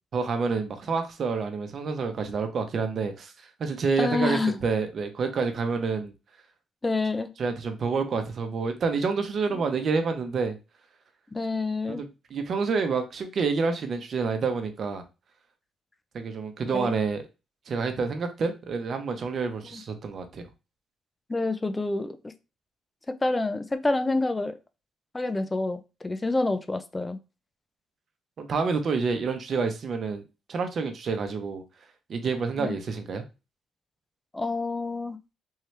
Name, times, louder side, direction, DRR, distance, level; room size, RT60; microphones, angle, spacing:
voice 1, 0.1-6.1 7.4-10.6 11.9-15.0 16.1-17.2 17.7-20.5 28.4-30.2 30.5-31.6 32.1-33.2, right 4 dB, 55° right, 0.9 m, -28 dB
voice 2, 4.0-4.6 6.8-7.3 9.5-9.6 11.3-12.0 16.7-17.0 19.7-19.8 21.3-22.3 23.1-24.6 25.1-27.2 32.6-32.8 34.3-35.2, left 2 dB, 20° left, 0.5 m, -28 dB
3.7 x 3.0 x 3.2 m
cardioid pair, 90°, 0 cm